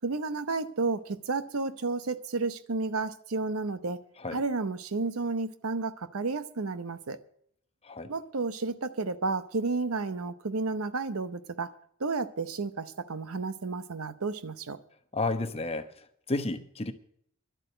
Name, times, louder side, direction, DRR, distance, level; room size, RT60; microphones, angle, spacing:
voice 1, 0.0-4.0 4.3-7.2 8.1-11.7 12.0-14.8, right 3 dB, 85° right, 0.8 m, -32 dB
voice 2, 15.1-15.9 16.3-16.9, left 2 dB, 30° left, 0.9 m, -31 dB
11.5 x 7.8 x 9.1 m
head